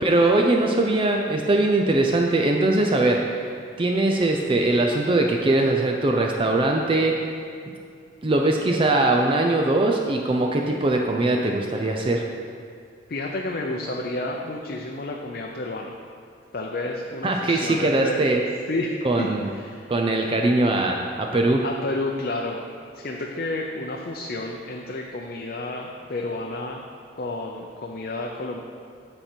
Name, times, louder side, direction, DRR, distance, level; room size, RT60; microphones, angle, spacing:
voice 1, 0.0-3.5 3.8-7.3 8.2-12.3 17.2-18.4 19.0-19.5 19.9-21.6, right 2 dB, 30° right, 1 dB, 0.5 m, -21 dB
voice 2, 13.1-15.9 16.5-18.2 18.7-19.9 21.6-22.7 22.9-26.8 27.2-28.6, left 2 dB, 55° left, 0 dB, 0.6 m, -30 dB
13.0 x 4.4 x 4.4 m, 2.3 s
head